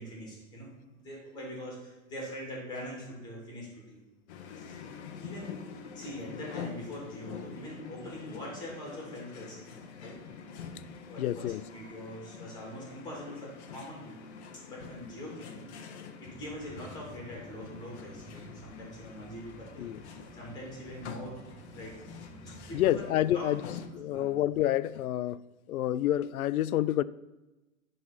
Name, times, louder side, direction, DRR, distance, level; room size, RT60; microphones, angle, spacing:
voice 1, 0.0-4.0 4.6-4.8 5.2-10.2 11.1-14.3 14.7-21.3 21.7-21.9 22.7-23.1 23.3-23.5 24.1-24.3, equal, 10° left, 2.4 m, -43 dB
sound 1, 4.3-23.9, left 6 dB, 50° left, 1.0 m, -46 dB
voice 2, 11.2-11.6 19.8-20.0 22.7-25.4 25.7-27.0, left 13 dB, 90° left, 0.5 m, -28 dB
sound 2, 16.2-22.9, right 2 dB, 20° right, 1.6 m, -51 dB
11.0 x 4.0 x 5.7 m
hypercardioid pair, 165°, 41 cm